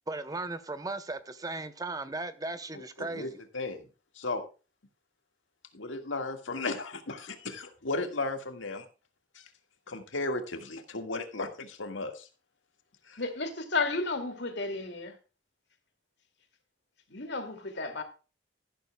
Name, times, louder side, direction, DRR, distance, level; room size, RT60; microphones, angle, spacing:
voice 1, 0.1-3.4, right 2 dB, 20° right, 0.7 m, -37 dB
voice 2, 3.5-3.8 4.2-4.4 5.7-8.9 9.4-9.5 9.9-12.3 13.0-13.2, left 2 dB, 85° left, 1.8 m, -35 dB
voice 3, 13.2-15.2 17.1-18.0, left 3 dB, 60° left, 2.5 m, -32 dB
13.5 x 12.0 x 2.3 m
head